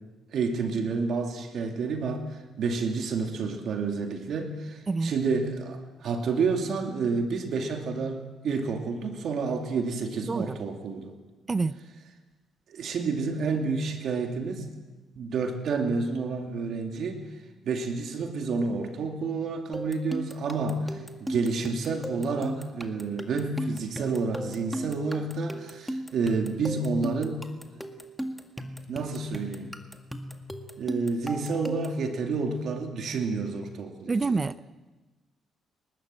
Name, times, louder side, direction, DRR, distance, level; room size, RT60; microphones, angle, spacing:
voice 1, 0.3-11.1 12.7-14.7 15.2-17.2 17.6-27.5 28.9-29.7 30.8-34.1, right 4 dB, 65° right, 4 dB, 2.5 m, -29 dB
sound 1, 19.7-32.0, equal, ahead, 1.9 m, -37 dB
voice 2, 34.1-34.7, right 4 dB, 30° right, 15 dB, 0.6 m, -27 dB
30.0 x 12.5 x 7.6 m, 1.2 s
cardioid pair, 90°, 0 cm